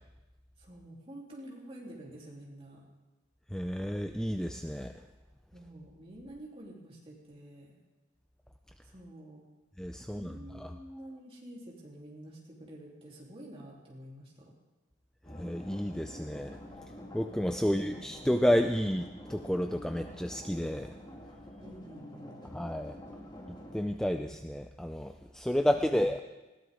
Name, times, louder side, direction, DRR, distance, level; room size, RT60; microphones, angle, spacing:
voice 1, 0.6-2.8 5.5-7.8 8.8-9.5 10.1-14.5 17.6-18.1 21.6-22.4, right 1 dB, 30° right, -4 dB, 3.5 m, -49 dB
voice 2, 3.5-5.0 9.8-10.7 15.3-16.6 17.1-20.9 22.5-23.0 23.5-26.2, equal, 5° left, 6 dB, 0.4 m, -31 dB
sound 1, 15.2-23.9, left 1 dB, 20° left, 1.8 m, -48 dB
20.0 x 17.0 x 3.7 m, 1.1 s
head